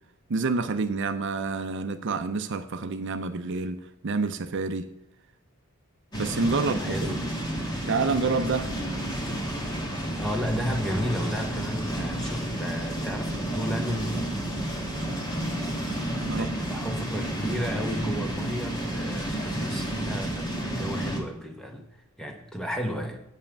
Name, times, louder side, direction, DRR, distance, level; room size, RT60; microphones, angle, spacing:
voice 1, 0.3-4.9 6.2-7.1 7.9-8.7 16.3-16.5, right 4 dB, 55° right, 9 dB, 0.5 m, -28 dB
sound 1, 6.1-21.2, right 1 dB, 20° left, 1.4 m, -31 dB
voice 2, 6.6-7.3 10.2-14.3 16.2-21.8 22.2-23.2, equal, ahead, 4 dB, 1.0 m, -33 dB
8.5 x 5.5 x 7.1 m, 0.77 s
head